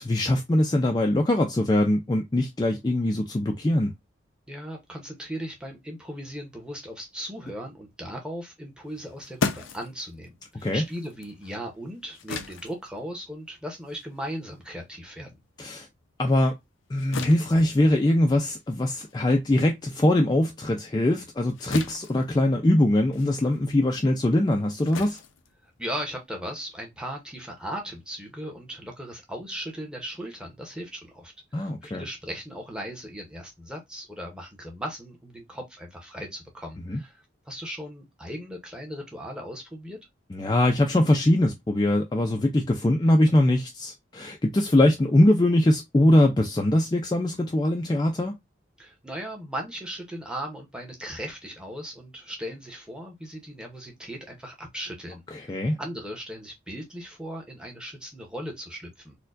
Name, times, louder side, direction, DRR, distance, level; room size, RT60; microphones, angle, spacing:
voice 1, 0.0-3.9 10.6-10.8 15.6-15.9 16.2-16.6 16.9-25.2 31.5-32.0 36.9-37.0 40.3-48.3 55.3-55.8, left 1 dB, 20° left, 0.4 m, -22 dB
voice 2, 4.5-15.4 25.6-40.0 48.8-55.5 55.8-59.2, equal, 5° right, 0.8 m, -37 dB
sound 1, 8.9-15.7 16.0-26.2, left 4 dB, 90° left, 0.5 m, -38 dB
4.3 x 2.2 x 2.5 m
head